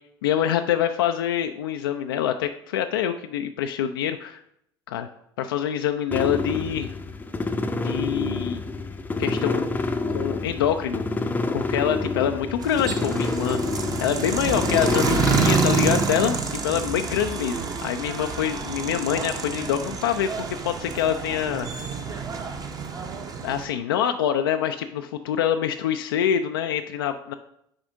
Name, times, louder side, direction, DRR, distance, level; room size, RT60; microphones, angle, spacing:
voice 1, 0.2-4.4 4.9-5.1 5.4-6.9 7.8-8.6 9.2-9.7 10.1-11.0 11.5-13.6 14.0-16.4 16.6-21.7 23.4-27.3, left 9 dB, 70° left, 6 dB, 0.4 m, -25 dB
sound 1, 6.1-16.1, left 3 dB, 15° left, 0.6 m, -27 dB
sound 2, 12.6-23.7, right 5 dB, 30° right, 0.9 m, -28 dB
8.6 x 4.8 x 2.7 m, 0.73 s
figure-of-eight pair, 65°, 13 cm